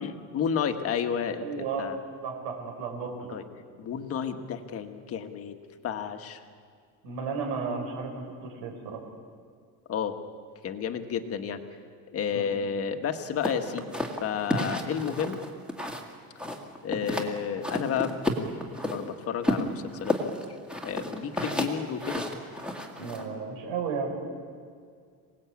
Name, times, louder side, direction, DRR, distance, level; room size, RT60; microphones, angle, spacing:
voice 1, 0.0-2.0 3.1-3.4 3.8-5.6 5.8-6.4 9.9-10.2 10.6-11.6 12.1-13.9 14.2-15.4 16.8-18.2 18.9-20.2 20.8-22.3, left 7 dB, 35° left, 7 dB, 1.5 m, -31 dB
voice 2, 1.4-1.9 2.2-3.3 7.0-9.0 12.3-12.5 23.0-24.1, right 5 dB, 70° right, 0 dB, 5.0 m, -33 dB
sound 1, 13.4-16.1 16.4-17.3 17.6-19.0 19.4-23.2, left 1 dB, ahead, 1.9 m, -31 dB
27.0 x 18.5 x 8.4 m, 2.1 s
cardioid pair, 170°, 42 cm